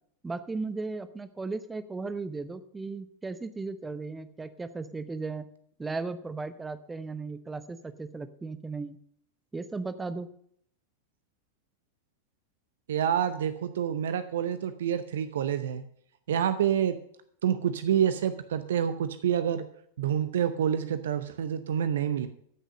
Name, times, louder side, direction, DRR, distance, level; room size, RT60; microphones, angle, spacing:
voice 1, 0.2-5.4 5.8-9.0 9.5-10.3, right 3 dB, 10° right, 12 dB, 0.8 m, -36 dB
voice 2, 12.9-15.8 16.3-16.9 17.4-19.6 20.0-22.3, right 9 dB, 60° right, 11 dB, 0.7 m, -27 dB
13.5 x 6.2 x 6.5 m, 0.66 s
figure-of-eight pair, 90°, 0 cm